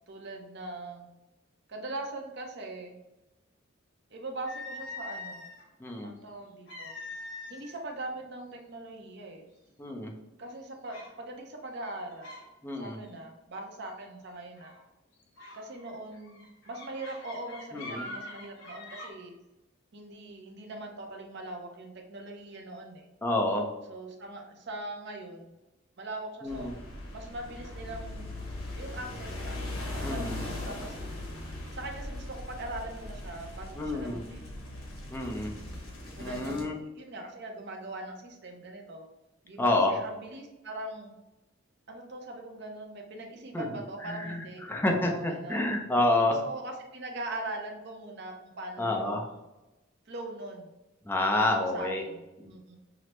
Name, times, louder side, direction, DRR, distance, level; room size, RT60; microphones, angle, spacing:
voice 1, 0.1-1.1 1.7-3.0 4.1-5.5 6.0-6.9 7.5-9.4 10.4-12.3 12.8-14.7 15.5-19.3 19.9-23.1 23.9-25.6 26.0-26.7 27.1-28.3 28.8-29.6 29.9-31.0 31.7-34.5 35.4-35.8 36.2-39.0 39.4-41.1 41.9-45.7 46.4-49.2 50.1-50.7 51.3-52.8, right 2 dB, 55° right, 2 dB, 0.7 m, -41 dB
sound 1, 4.5-5.7 6.7-7.8 8.1-8.4 9.1-9.2 9.7-10.1 10.9-11.1 11.7-12.5 12.8-13.1 14.6-14.8 15.4-19.1, left 2 dB, 65° left, 1.2 m, -43 dB
voice 2, 5.8-6.1 9.8-10.1 12.6-13.0 17.7-18.1 23.2-23.7 26.4-26.7 30.0-30.4 33.8-34.2 35.1-35.5 36.2-36.8 39.6-40.0 43.5-43.7 44.0-46.4 48.8-49.3 51.0-52.0 52.4-52.5, left 2 dB, 10° left, 0 dB, 0.5 m, -28 dB
sound 2, 26.5-36.6, left 1 dB, 90° left, 1.2 m, -39 dB
5.8 x 2.1 x 3.0 m, 0.99 s
head